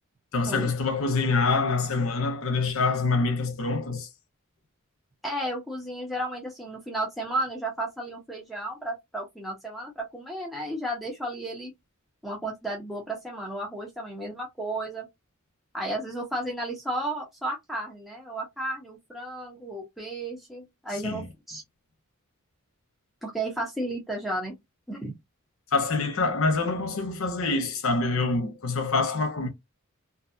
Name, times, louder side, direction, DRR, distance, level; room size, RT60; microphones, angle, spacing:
voice 1, 0.3-4.1 20.9-21.3 25.7-29.5, left 3 dB, 65° left, 0.8 m, -26 dB
voice 2, 5.2-11.7 12.2-15.1 15.7-21.6 23.2-24.5 24.9-25.1, right 1 dB, ahead, 0.8 m, -33 dB
2.5 x 2.3 x 2.6 m
head